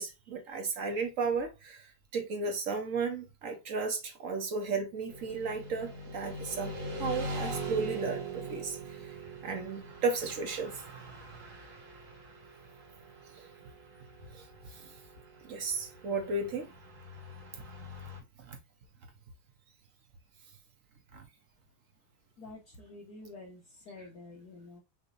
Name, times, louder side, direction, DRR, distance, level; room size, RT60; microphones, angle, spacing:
voice 1, 0.0-1.8 2.1-8.8 9.4-10.8 13.4-13.5 15.4-16.7 18.5-18.6 21.1-21.2, right 4 dB, 55° right, 1.1 m, -34 dB
Motorcycle / Traffic noise roadway noise, 5.1-18.2, right 2 dB, 80° right, 2.9 m, -42 dB
voice 2, 22.4-24.8, left 2 dB, 55° left, 1.6 m, -49 dB
6.1 x 3.2 x 2.6 m
omnidirectional pair, 2.1 m